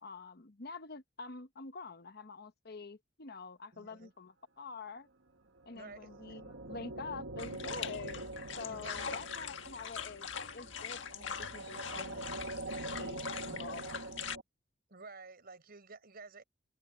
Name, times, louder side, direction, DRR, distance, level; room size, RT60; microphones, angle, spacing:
voice 1, 0.0-5.1 5.7-8.2 8.6-12.6 13.0-14.0, left 4 dB, 55° left, 1.1 m, -47 dB
voice 2, 3.7-4.1 5.7-6.1 8.7-9.2 14.9-16.4, right 4 dB, 55° right, 4.4 m, -51 dB
sound 1, 5.6-14.4, right 2 dB, 85° right, 1.4 m, -44 dB
sound 2, 7.4-14.4, left 7 dB, 75° left, 1.6 m, -43 dB
open air
head